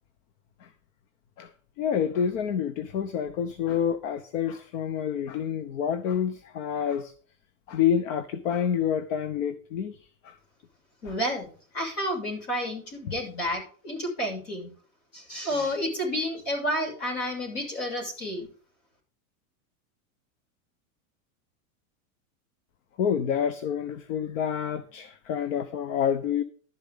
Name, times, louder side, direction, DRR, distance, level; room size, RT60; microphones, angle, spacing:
voice 1, 1.8-7.1 7.7-10.0 10.2-10.3 11.1-11.2 23.0-26.4, left 8 dB, 60° left, 13 dB, 1.1 m, -28 dB
voice 2, 11.0-14.7 15.1-18.5, equal, 35° left, 1 dB, 6.9 m, -30 dB
12.0 x 10.5 x 3.7 m, 0.41 s
supercardioid pair, 175°, 44 cm